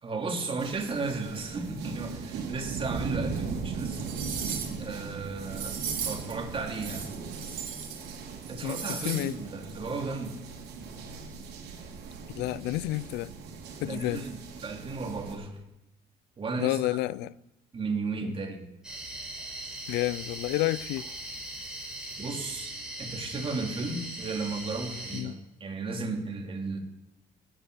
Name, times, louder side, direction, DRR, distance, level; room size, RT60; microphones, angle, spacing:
voice 1, 0.0-4.0 4.8-5.8 6.0-7.2 8.5-10.4 13.8-15.6 16.4-17.0 17.7-18.7 22.2-26.8, right 3 dB, 30° right, 3.0 m, -34 dB
sound 1, 0.6-15.3, right 5 dB, 80° right, 3.8 m, -39 dB
sound 2, 3.3-3.4 3.9-4.8 5.5-6.3 6.7-8.2 8.4-9.3 9.6-9.7, right 7 dB, 55° right, 3.5 m, -36 dB
voice 2, 8.6-9.4 12.4-13.3 13.8-14.2 16.6-17.3 18.2-18.3 19.9-21.1 25.1-25.3, left 17 dB, 85° left, 0.5 m, -30 dB
sound 3, 18.8-25.2, right 1 dB, 5° right, 5.4 m, -39 dB
17.0 x 10.0 x 6.9 m
cardioid pair, 110°, 17 cm